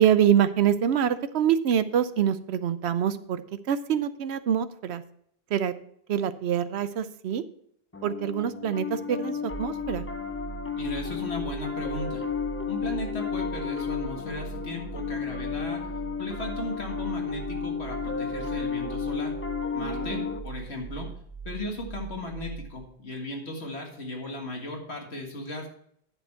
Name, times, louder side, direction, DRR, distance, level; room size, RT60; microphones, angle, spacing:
voice 1, 0.0-3.4 3.7-5.0 5.5-5.7 6.1-7.4 8.0-10.1 19.8-20.3, right 9 dB, 80° right, 13 dB, 0.9 m, -25 dB
Piano, 7.9-20.4, left 6 dB, 15° left, 0.6 m, -33 dB
sound 1, 9.5-22.8, right 6 dB, 30° right, 0.4 m, -41 dB
voice 2, 10.8-12.2 12.7-15.8 16.2-19.3 19.7-21.1 21.5-25.7, left 2 dB, 80° left, 1 dB, 2.1 m, -36 dB
10.0 x 6.9 x 4.3 m, 0.68 s
omnidirectional pair, 1.1 m